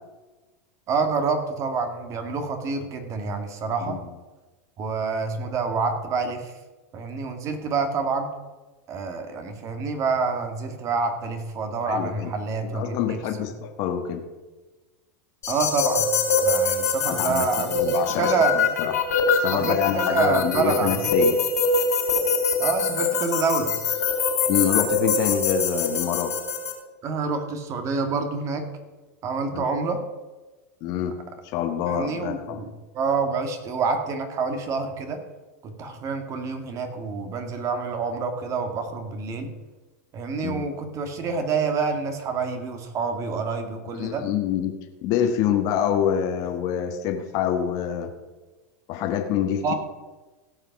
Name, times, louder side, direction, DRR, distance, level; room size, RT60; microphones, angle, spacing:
voice 1, 0.9-4.0 4.8-6.5 6.9-8.3 8.9-13.5 15.5-16.1 16.4-18.6 19.5-21.1 22.6-23.7 27.0-28.6 29.2-30.0 31.9-32.7 32.9-35.2 35.6-39.5 40.1-44.3 49.6-49.7, right 4 dB, 40° right, 6 dB, 1.9 m, -27 dB
voice 2, 11.8-12.3 12.6-14.3 17.1-18.9 19.4-21.4 24.5-26.4 29.4-29.7 30.8-31.2 31.5-32.6 40.4-40.7 44.0-44.7 45.0-48.1 48.9-49.7, left 9 dB, 50° left, 5 dB, 1.5 m, -26 dB
sound 1, 15.4-26.7, left 4 dB, 90° left, 4.0 m, -24 dB
16.5 x 5.7 x 5.9 m, 1.2 s
hypercardioid pair, 110°, 8 cm